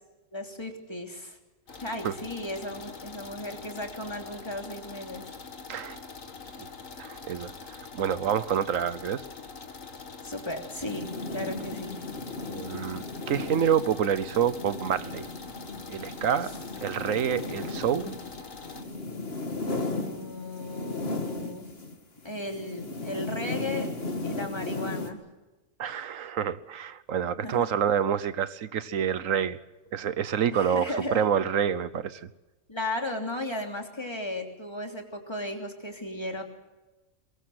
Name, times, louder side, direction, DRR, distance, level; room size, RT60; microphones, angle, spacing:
voice 1, 0.3-1.4 1.8-5.3 10.2-12.0 19.9-21.6 22.2-23.9 24.2-25.2 27.4-27.7 30.5-31.2 32.7-36.4, left 1 dB, 20° left, 3 dB, 3.2 m, -35 dB
sound 1, 1.7-18.8, left 4 dB, 90° left, 2.4 m, -44 dB
voice 2, 5.7-6.0 6.6-6.7 7.0-9.2 12.4-15.3 15.9-16.5 16.8-18.2 25.8-29.6 29.9-32.2, right 8 dB, 90° right, 15 dB, 1.4 m, -28 dB
sound 2, 10.8-22.0 22.2-25.1, left 2 dB, 50° left, 2.4 m, -36 dB
22.5 x 22.5 x 7.8 m, 1.1 s
omnidirectional pair, 1.3 m